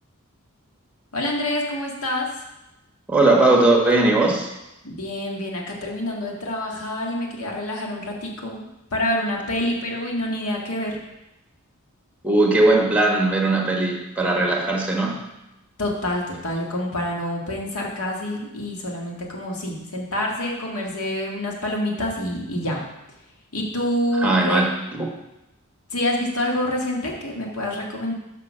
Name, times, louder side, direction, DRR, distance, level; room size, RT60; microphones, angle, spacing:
voice 1, 1.1-2.3 4.8-11.0 15.8-22.8 23.5-24.7 25.9-28.1, left 1 dB, 85° left, -1 dB, 1.7 m, -27 dB
voice 2, 3.1-4.5 12.2-15.2 24.2-25.1, right 2 dB, 5° right, 0 dB, 1.3 m, -19 dB
6.4 x 5.3 x 6.1 m, 0.94 s
head